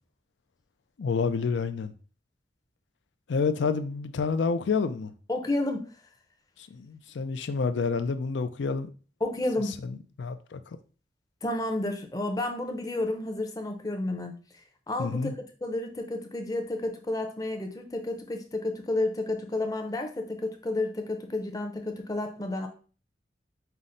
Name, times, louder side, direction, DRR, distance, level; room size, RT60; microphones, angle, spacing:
voice 1, 1.0-1.9 3.3-5.1 6.7-8.9 10.2-10.6 15.0-15.3, left 5 dB, 85° left, 0.4 m, -28 dB
voice 2, 5.3-5.9 9.2-9.8 11.4-14.3 14.9-22.7, left 2 dB, 20° left, 0.6 m, -31 dB
5.6 x 2.1 x 3.8 m
head